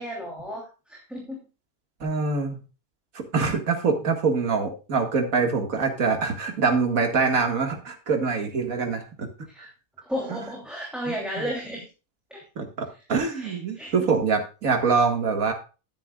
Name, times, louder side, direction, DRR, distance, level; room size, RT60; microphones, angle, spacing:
voice 1, 0.0-1.4 9.5-9.7 10.0-11.8 12.3-12.4 13.4-13.9, equal, ahead, -3 dB, 2.9 m, -33 dB
voice 2, 2.0-2.6 3.1-9.3 10.3-10.4 11.1-11.2 12.6-15.5, right 4 dB, 85° right, 4 dB, 2.2 m, -24 dB
11.5 x 10.0 x 2.4 m, 0.32 s
omnidirectional pair, 1.4 m